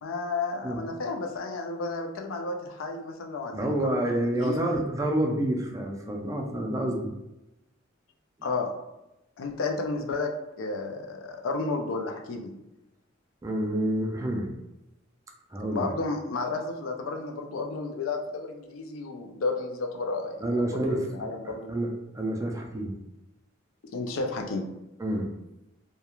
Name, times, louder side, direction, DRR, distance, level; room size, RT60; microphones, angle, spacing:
voice 1, 0.0-4.6 8.4-8.7 9.4-10.3 10.6-12.5 15.7-20.4 20.8-21.7 23.8-24.7, left 3 dB, 85° left, 3 dB, 0.4 m, -32 dB
voice 2, 3.5-7.1 13.4-14.5 15.5-15.9 20.4-21.1 21.7-22.9 25.0-25.3, right 1 dB, 15° right, 1 dB, 0.3 m, -28 dB
2.3 x 2.1 x 2.9 m, 0.92 s
head